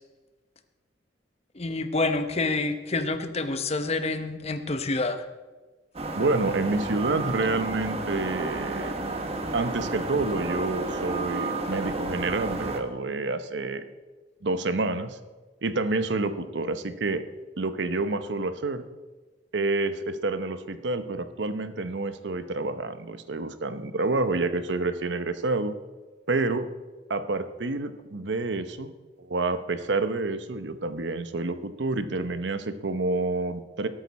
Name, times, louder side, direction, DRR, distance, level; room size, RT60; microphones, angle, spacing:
voice 1, 1.5-5.2, left 3 dB, 35° left, 9 dB, 0.9 m, -28 dB
sound 1, 5.9-12.8, right 2 dB, 35° right, 1.4 m, -31 dB
voice 2, 6.1-8.9 9.5-13.8 14.4-15.2 15.6-17.2 17.6-18.8 19.5-25.7 26.3-26.7 27.1-28.9 29.2-33.9, right 3 dB, 75° right, 11 dB, 0.9 m, -28 dB
19.5 x 9.0 x 4.2 m, 1.3 s
head